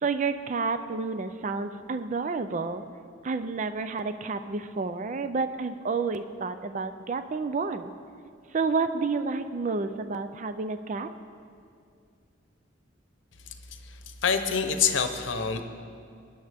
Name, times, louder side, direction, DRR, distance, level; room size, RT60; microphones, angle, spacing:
voice 1, 0.0-2.8 3.2-7.9 8.5-11.1, right 4 dB, 40° right, 10 dB, 0.4 m, -30 dB
voice 2, 13.8-15.6, left 6 dB, 70° left, 8 dB, 0.9 m, -27 dB
20.5 x 10.0 x 3.5 m, 2.4 s
head